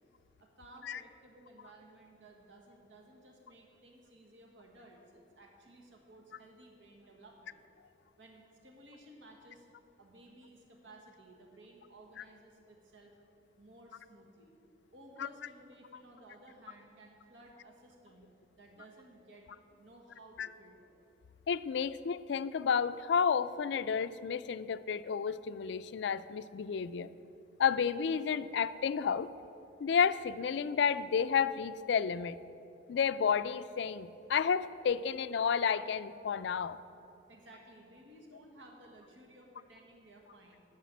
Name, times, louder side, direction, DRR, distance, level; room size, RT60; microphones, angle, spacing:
voice 1, 0.4-7.6 8.2-9.7 10.0-13.1 13.6-14.6 14.9-18.3 18.6-19.5 19.8-21.0 37.3-40.6, right 1 dB, 85° right, 1 dB, 1.5 m, -57 dB
voice 2, 21.5-27.1 27.6-29.3 29.8-32.4 32.9-36.8, left 6 dB, 65° left, 14 dB, 0.4 m, -31 dB
11.0 x 6.7 x 7.2 m, 2.8 s
head